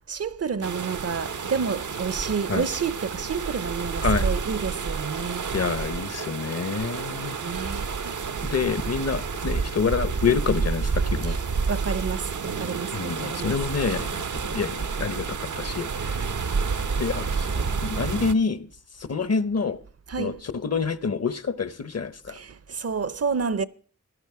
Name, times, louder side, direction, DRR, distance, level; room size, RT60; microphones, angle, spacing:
voice 1, 0.1-5.5 7.4-8.2 11.2-11.4 11.7-13.6 20.1-20.4 22.3-23.7, right 5 dB, 55° right, 0.6 m, -30 dB
sound 1, 0.6-18.3, right 5 dB, 90° right, 0.8 m, -29 dB
voice 2, 5.5-7.4 8.5-11.4 12.9-14.1 14.5-15.9 17.0-18.7 19.1-19.8 20.2-22.3, left 5 dB, 55° left, 0.8 m, -27 dB
16.0 x 11.5 x 4.7 m
wide cardioid pair, 85°, 29 cm